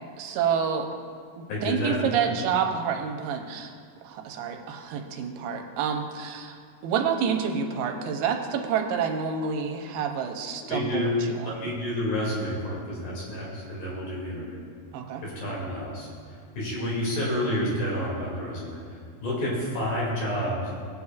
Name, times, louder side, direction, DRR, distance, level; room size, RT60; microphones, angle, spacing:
voice 1, 0.2-0.9 1.4-3.7 4.0-11.7 14.9-15.2, right 7 dB, 85° right, 3 dB, 2.7 m, -28 dB
voice 2, 1.5-2.2 10.7-11.1 11.5-14.6 15.2-20.7, left 1 dB, 65° left, -5 dB, 4.1 m, -30 dB
18.0 x 8.3 x 2.4 m, 2.1 s
omnidirectional pair, 4.5 m